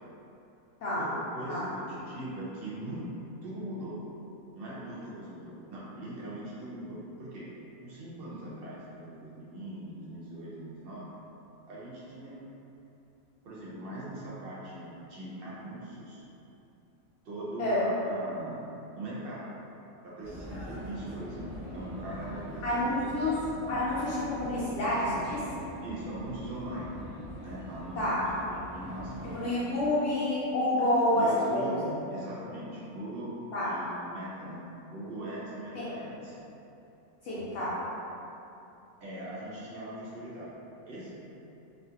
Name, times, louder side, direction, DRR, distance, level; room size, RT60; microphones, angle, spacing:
voice 1, 0.9-3.0 3.4-4.0 4.5-7.5 7.8-11.1 11.7-12.4 13.4-16.2 17.2-18.7 18.9-19.5 20.0-23.1 25.8-27.1 27.4-29.7 31.1-33.3 33.6-34.6 34.9-36.3 39.0-40.5 40.9-41.2, right 1 dB, 60° right, -7 dB, 0.6 m, -40 dB
Vehicle, 20.2-29.5, equal, 10° right, 0.9 m, -43 dB
voice 2, 22.6-23.3 23.7-25.4 28.0-28.2 29.2-31.8 33.5-33.7 35.7-35.9 37.2-37.7, left 1 dB, 65° left, -11 dB, 0.8 m, -28 dB
2.4 x 2.4 x 2.7 m, 2.9 s
omnidirectional pair, 1.5 m